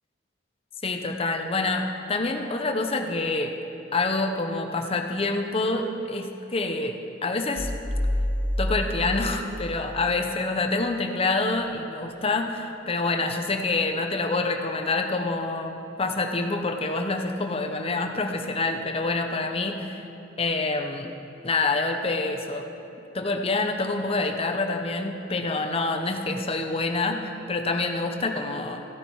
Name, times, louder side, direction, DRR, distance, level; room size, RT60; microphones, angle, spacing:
voice 1, 0.8-3.5 3.9-6.9 7.2-7.7 8.6-20.0 20.4-21.1 21.4-22.7 23.1-28.9, left 3 dB, 30° left, 4 dB, 0.8 m, -27 dB
sound 1, 7.6-10.2, left 1 dB, 5° left, 0.3 m, -28 dB
14.5 x 9.5 x 4.6 m, 2.9 s
head